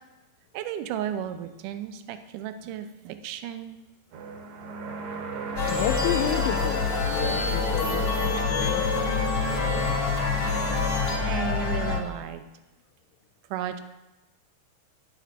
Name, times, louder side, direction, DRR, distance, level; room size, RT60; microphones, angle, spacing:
voice 1, 0.5-3.8 11.2-12.4 13.5-13.8, right 10 dB, 80° right, 9 dB, 2.0 m, -34 dB
sound 1, 4.1-12.0, right 4 dB, 65° right, 2.1 m, -35 dB
sound 2, 5.5-11.2, left 1 dB, 10° left, 0.8 m, -30 dB
voice 2, 5.6-8.9, left 13 dB, 85° left, 6 dB, 2.3 m, -31 dB
sound 3, 5.6-12.0, left 9 dB, 70° left, 1.4 m, -28 dB
10.5 x 9.2 x 4.4 m, 1.0 s
omnidirectional pair, 4.1 m